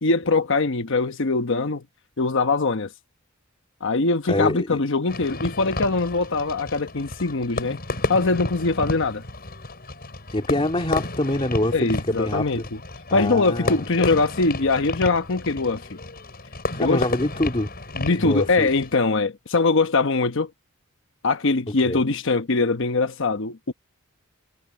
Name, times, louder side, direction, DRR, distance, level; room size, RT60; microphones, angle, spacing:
voice 1, 0.0-1.8 2.2-2.9 3.8-7.8 8.1-9.2 11.7-12.6 13.1-16.0 16.8-17.0 17.9-20.5 21.2-23.7, left 3 dB, 65° left, 1.0 m, -22 dB
voice 2, 4.3-4.8 10.3-12.7 13.1-13.9 16.7-17.7 18.2-18.7 21.7-22.0, left 1 dB, 25° left, 2.6 m, -25 dB
Fireworks, 5.1-19.0, left 2 dB, 50° left, 7.2 m, -32 dB
head